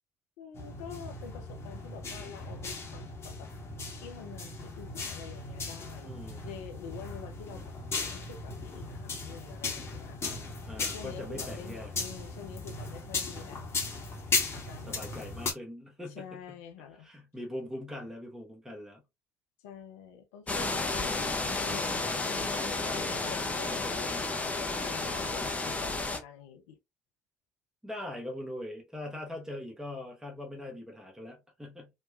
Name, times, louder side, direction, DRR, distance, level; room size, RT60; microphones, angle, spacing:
voice 1, 0.4-3.5 4.0-7.7 8.1-10.4 10.8-13.6 14.5-15.4 16.1-17.1 19.6-26.8, left 7 dB, 70° left, 0.5 m, -47 dB
sound 1, 0.5-15.5, left 3 dB, 35° left, 1.0 m, -37 dB
voice 2, 6.0-6.5 10.7-11.9 14.9-16.4 17.0-19.0 23.5-23.9 27.8-31.9, left 1 dB, 5° right, 1.0 m, -41 dB
sound 2, 20.5-26.2, left 3 dB, 20° left, 0.6 m, -32 dB
2.9 x 2.2 x 2.3 m
figure-of-eight pair, 55°, 8 cm